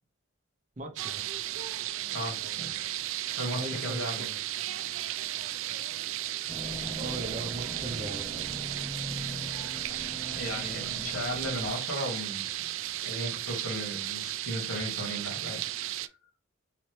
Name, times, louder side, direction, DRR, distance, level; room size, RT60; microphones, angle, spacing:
voice 1, 0.8-1.2 3.5-4.3 7.0-8.5, right 1 dB, 35° right, 0.7 m, -38 dB
sound 1, 1.0-16.1, right 14 dB, 65° right, 0.3 m, -35 dB
voice 2, 2.1-2.7 3.2-4.3 10.0-12.5 13.0-15.6 16.0-16.1, equal, 65° left, 2.1 m, -36 dB
sound 2, 6.5-11.7, equal, 5° right, 0.9 m, -41 dB
4.0 x 2.9 x 3.2 m
head